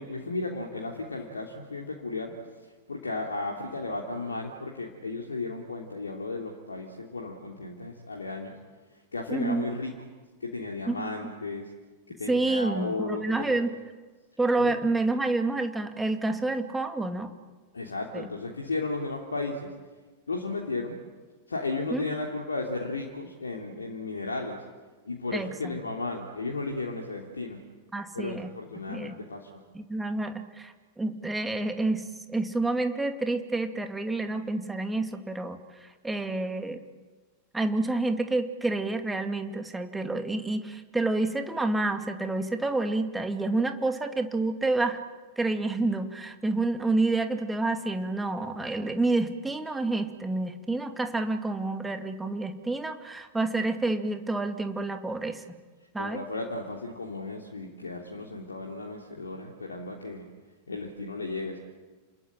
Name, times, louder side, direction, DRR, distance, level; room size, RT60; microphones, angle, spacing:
voice 1, 0.0-2.3 2.6-8.5 9.1-9.9 10.4-11.7 12.1-13.6 14.5-14.7 17.7-19.7 20.3-21.0 21.5-24.6 25.1-27.6 28.1-29.6 56.0-60.3 60.7-61.6, left 3 dB, 75° left, 0 dB, 3.0 m, -34 dB
voice 2, 9.3-9.6 10.9-11.1 12.3-13.7 14.4-17.3 18.1-18.3 21.9-22.0 25.3-25.7 27.9-28.5 28.9-29.2 29.7-32.0 32.3-36.8 37.5-45.0 45.4-55.4 55.9-56.2, right 2 dB, 10° right, 7 dB, 2.4 m, -28 dB
29.0 x 21.0 x 8.9 m, 1.3 s
figure-of-eight pair, 90°, 0 cm